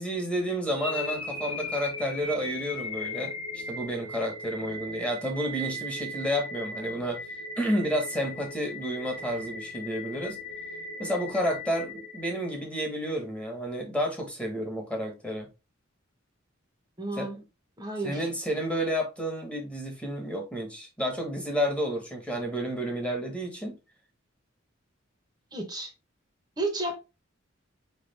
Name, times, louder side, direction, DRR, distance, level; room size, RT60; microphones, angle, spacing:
voice 1, 0.0-7.2 7.6-10.4 11.0-15.5 17.2-17.4 18.0-23.8, equal, 5° left, 1.2 m, -31 dB
sound 1, 0.7-12.8, left 1 dB, 30° left, 1.0 m, -38 dB
voice 2, 17.0-17.4 17.8-18.2 25.5-25.9 26.6-27.0, right 2 dB, 20° right, 0.9 m, -32 dB
4.7 x 3.3 x 3.3 m
head